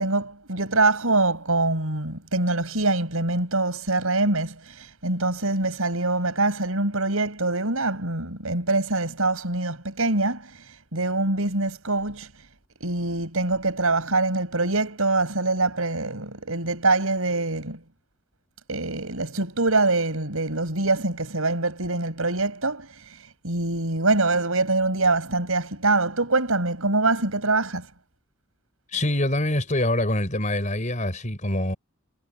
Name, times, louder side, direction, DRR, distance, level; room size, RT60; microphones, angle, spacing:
voice 1, 0.0-12.3 12.8-17.8 18.7-23.2 23.4-27.9, right 2 dB, 80° right, 5.7 m, -24 dB
voice 2, 28.9-31.8, left 1 dB, 35° left, 4.7 m, -25 dB
head